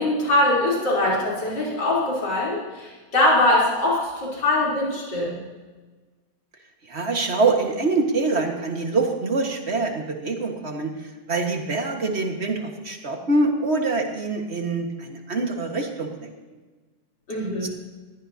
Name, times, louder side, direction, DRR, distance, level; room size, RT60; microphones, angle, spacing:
voice 1, 0.0-5.4 17.3-17.7, left 1 dB, 80° left, -6 dB, 4.4 m, -22 dB
voice 2, 6.9-10.9 11.3-16.3 17.6-17.7, right 3 dB, 40° right, 3 dB, 1.9 m, -25 dB
21.5 x 15.0 x 2.8 m, 1.3 s
omnidirectional pair, 1.8 m